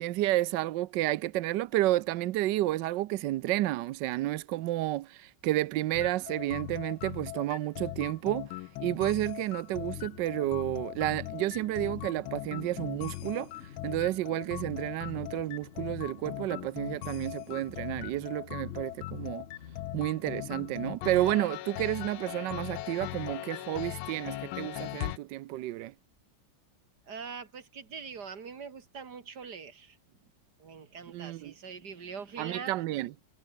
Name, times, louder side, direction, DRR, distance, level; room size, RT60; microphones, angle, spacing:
voice 1, 0.0-19.4 19.9-25.9 31.1-31.5 32.4-33.1, right 15 dB, 70° right, 1.1 m, -31 dB
sound 1, 5.9-25.2, left 17 dB, 80° left, 1.4 m, -40 dB
sound 2, 9.7-21.6, left 8 dB, 50° left, 0.9 m, -50 dB
voice 2, 27.1-30.3 30.6-32.7, right 6 dB, 50° right, 2.7 m, -43 dB
omnidirectional pair, 2.3 m